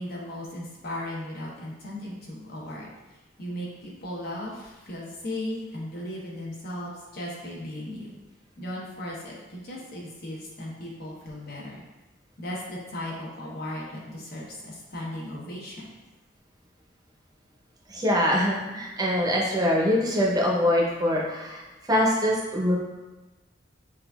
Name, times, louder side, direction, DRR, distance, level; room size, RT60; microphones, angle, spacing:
voice 1, 0.0-2.9 3.4-8.1 8.6-11.8 12.4-15.9, left 1 dB, 60° left, -4 dB, 0.9 m, -36 dB
voice 2, 17.9-22.8, equal, 20° right, -3 dB, 0.7 m, -24 dB
6.0 x 2.5 x 2.3 m, 1.1 s
head